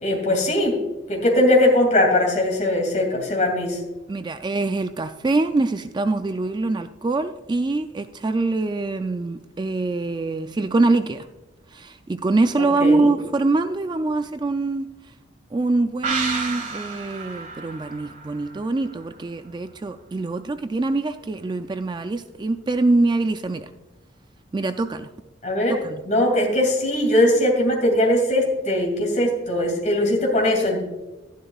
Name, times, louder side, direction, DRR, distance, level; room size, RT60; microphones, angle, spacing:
voice 1, 0.0-0.8 1.1-3.8 12.6-13.1 25.4-25.8 26.1-30.8, left 1 dB, 40° left, 1 dB, 2.5 m, -20 dB
voice 2, 4.1-11.3 11.7-15.1 15.5-23.7 24.5-25.1 25.8-26.0, right 2 dB, 25° right, 9 dB, 0.3 m, -24 dB
sound 1, 16.0-19.5 19.8-19.9, right 4 dB, 40° right, 1.4 m, -31 dB
12.0 x 11.0 x 2.4 m, 1.1 s
head